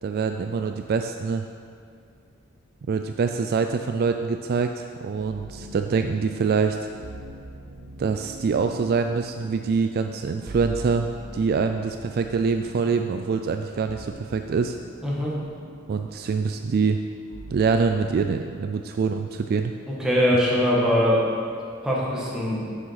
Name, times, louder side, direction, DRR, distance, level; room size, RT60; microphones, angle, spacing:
voice 1, 0.0-1.4 2.8-6.9 8.0-14.8 15.9-17.0 17.5-19.7, right 5 dB, 50° right, 6 dB, 0.3 m, -25 dB
sound 1, 5.2-18.2, right 2 dB, 85° right, 0.8 m, -43 dB
voice 2, 15.0-15.3 19.9-21.3 21.8-22.7, equal, 5° right, -6 dB, 1.6 m, -22 dB
7.5 x 6.3 x 5.8 m, 2.4 s
head